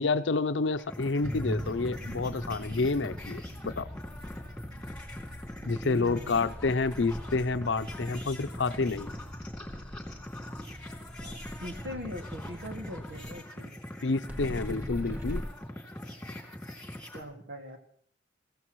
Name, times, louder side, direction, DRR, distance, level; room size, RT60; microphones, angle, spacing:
voice 1, 0.0-3.9 5.7-9.1 14.0-15.4, left 3 dB, 90° left, 13 dB, 0.6 m, -29 dB
sound 1, 0.8-17.2, left 1 dB, 5° left, 2.9 m, -43 dB
sound 2, 1.2-13.3 14.3-15.4, equal, 10° right, 1.7 m, -41 dB
voice 2, 5.6-6.3 11.2-13.7 17.1-17.8, equal, 85° right, 3 dB, 2.1 m, -41 dB
23.0 x 16.0 x 3.1 m, 0.63 s
head